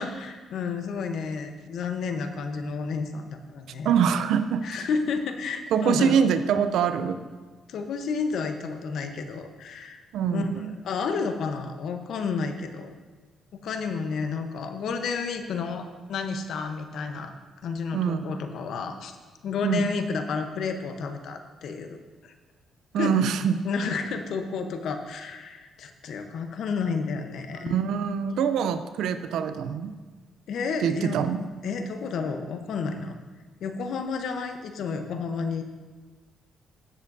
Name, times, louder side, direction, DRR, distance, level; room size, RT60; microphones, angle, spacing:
voice 1, 0.0-3.9 4.6-6.2 7.7-10.0 10.3-12.9 13.6-17.3 17.6-19.2 19.4-22.3 22.9-23.2 23.6-27.8 30.5-31.2 31.6-33.2 33.6-35.6, left 5 dB, 70° left, 6 dB, 0.9 m, -31 dB
voice 2, 3.8-4.7 5.7-7.2 10.1-10.7 17.9-18.3 19.6-19.9 22.9-23.5 27.7-29.9 30.8-31.4, right 7 dB, 80° right, 11 dB, 0.5 m, -24 dB
14.5 x 7.4 x 2.7 m, 1.4 s
cardioid pair, 90°, 0 cm